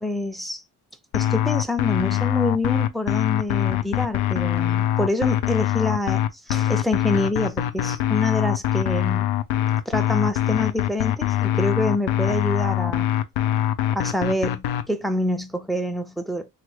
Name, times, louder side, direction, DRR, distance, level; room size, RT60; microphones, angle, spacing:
voice 1, 0.0-0.6 1.1-9.3 9.9-13.1 13.9-16.5, left 1 dB, ahead, 0.4 m, -26 dB
sound 1, 1.1-14.8, left 12 dB, 85° left, 0.5 m, -23 dB
3.2 x 2.2 x 3.1 m
cardioid pair, 85°, 38 cm